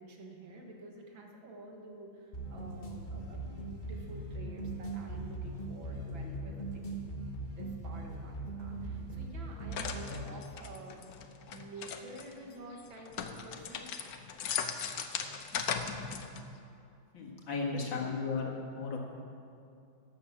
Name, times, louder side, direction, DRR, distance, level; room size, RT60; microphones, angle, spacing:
voice 1, 0.0-6.9 7.4-11.0 11.5-13.9 17.5-17.8 18.1-18.3, right 2 dB, 85° right, 1 dB, 2.4 m, -49 dB
sound 1, 2.3-10.4, right 2 dB, 30° left, 1.2 m, -40 dB
sound 2, 9.7-12.3 12.8-16.6, left 7 dB, 60° left, 1.1 m, -38 dB
voice 2, 17.1-19.0, left 4 dB, 80° left, -1 dB, 2.5 m, -35 dB
11.5 x 9.0 x 7.2 m, 2.6 s
omnidirectional pair, 2.1 m